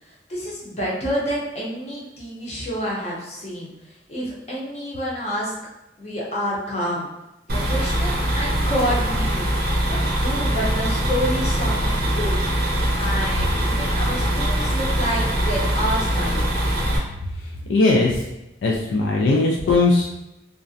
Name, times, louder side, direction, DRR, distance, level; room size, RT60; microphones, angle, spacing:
voice 1, 0.0-5.5 6.0-7.1 7.5-9.5 9.9-12.5 12.9-16.5, equal, 35° left, -4 dB, 0.6 m, -28 dB
sound 1, 7.5-17.0, right 1 dB, 55° right, 0.6 m, -22 dB
voice 2, 17.3-18.2 18.6-20.1, left 3 dB, 85° left, -2 dB, 0.3 m, -19 dB
2.4 x 2.1 x 2.6 m, 0.92 s
head